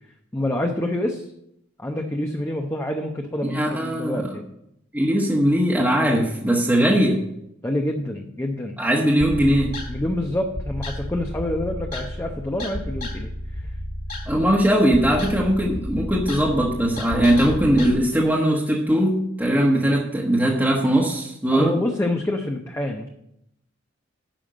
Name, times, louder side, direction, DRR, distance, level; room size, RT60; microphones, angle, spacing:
voice 1, 0.3-1.3 1.8-4.5 7.6-8.7 9.9-13.7 21.5-23.1, left 1 dB, 15° left, 2 dB, 0.8 m, -27 dB
voice 2, 3.5-4.3 4.9-7.2 8.8-9.7 14.3-21.7, right 1 dB, 10° right, -3 dB, 1.2 m, -20 dB
sound 1, 9.2-17.9, left 1 dB, 50° left, 2.6 m, -32 dB
10.0 x 5.7 x 7.7 m, 0.79 s
head